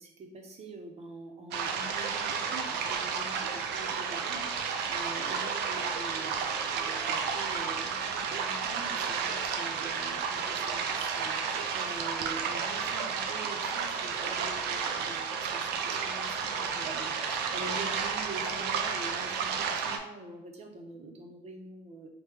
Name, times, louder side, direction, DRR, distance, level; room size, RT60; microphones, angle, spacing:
voice 1, 0.0-22.1, right 2 dB, 40° right, 2 dB, 0.7 m, -45 dB
sound 1, 1.5-20.0, right 6 dB, 80° right, 0.5 m, -32 dB
3.2 x 2.2 x 3.4 m, 0.87 s
cardioid pair, 110°, 17 cm